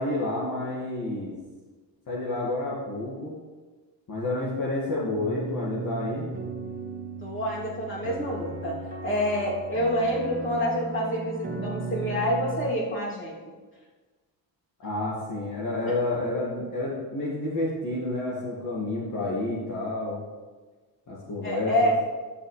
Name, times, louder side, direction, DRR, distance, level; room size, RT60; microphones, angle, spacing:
voice 1, 0.0-1.4 2.1-3.4 4.1-6.3 14.8-20.2 21.1-21.9, left 2 dB, 45° left, -6 dB, 2.1 m, -29 dB
sound 1, 5.2-12.7, right 3 dB, 20° right, 1.7 m, -36 dB
voice 2, 7.2-13.4 21.4-22.0, equal, 25° left, -4 dB, 2.9 m, -27 dB
12.0 x 6.8 x 3.3 m, 1.4 s
cardioid pair, 95°, 44 cm